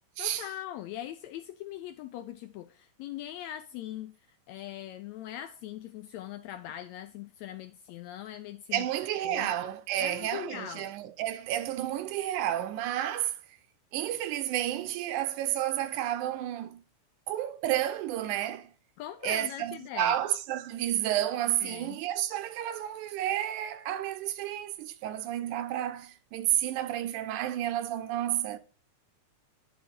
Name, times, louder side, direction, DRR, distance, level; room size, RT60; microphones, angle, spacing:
voice 1, 0.2-4.2 4.5-8.9 9.2-9.5 10.0-10.9 19.0-20.2 21.6-22.0, left 12 dB, 80° left, 1.6 m, -41 dB
voice 2, 8.7-13.4 13.9-16.8 17.3-18.7 19.2-28.6, right 12 dB, 80° right, 2.1 m, -31 dB
10.5 x 4.0 x 4.4 m
omnidirectional pair, 3.6 m